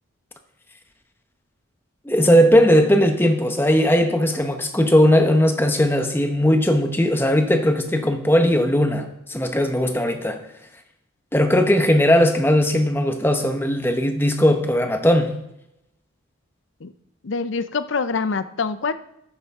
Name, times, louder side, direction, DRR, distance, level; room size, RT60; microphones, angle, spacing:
voice 1, 2.0-10.4 11.3-15.3, equal, 10° left, 6 dB, 0.9 m, -18 dB
voice 2, 17.2-18.9, left 4 dB, 65° left, 13 dB, 0.6 m, -25 dB
11.0 x 9.6 x 3.6 m, 0.83 s
head